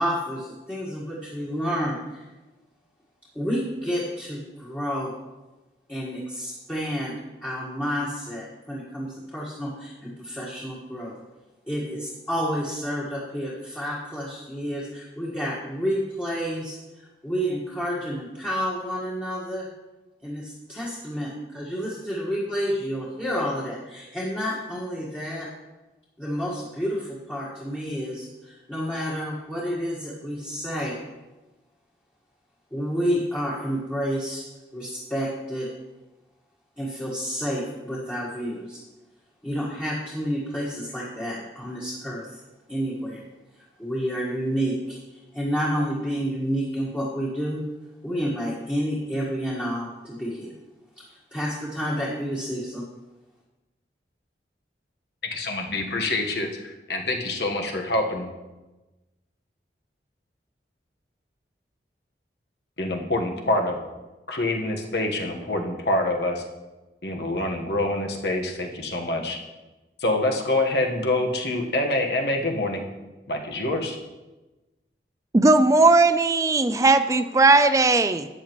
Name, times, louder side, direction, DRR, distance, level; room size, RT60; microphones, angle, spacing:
voice 1, 0.0-2.3 3.4-5.1 5.9-7.1 7.4-11.1 11.7-19.7 20.2-25.5 26.2-30.9 32.7-34.5 34.7-35.7 36.8-38.8 39.4-42.4 42.7-43.2 43.8-47.6 48.0-50.5 51.0-52.8, equal, 10° left, -7 dB, 1.6 m, -30 dB
voice 2, 55.3-58.3 62.8-63.8 64.3-66.4 67.0-69.4 70.0-72.9 73.3-74.0, left 2 dB, 70° left, 2 dB, 1.3 m, -26 dB
voice 3, 75.3-78.3, right 3 dB, 20° right, 11 dB, 0.4 m, -18 dB
13.0 x 9.0 x 3.1 m, 1.1 s
head